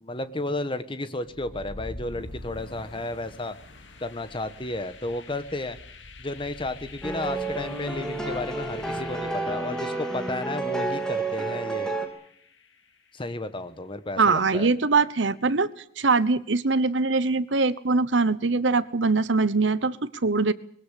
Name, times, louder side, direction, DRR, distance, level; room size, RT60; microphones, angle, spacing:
voice 1, 0.0-3.6 4.0-5.8 6.2-11.9 13.1-14.7, left 2 dB, 25° left, 11 dB, 1.3 m, -33 dB
sound 1, 1.2-13.1, left 2 dB, 75° left, 2.3 m, -45 dB
sound 2, 7.0-12.1, right 3 dB, 5° left, 2.8 m, -30 dB
voice 2, 14.2-15.7 16.0-20.5, right 4 dB, 75° right, 16 dB, 1.0 m, -22 dB
21.5 x 16.5 x 8.4 m, 0.67 s
head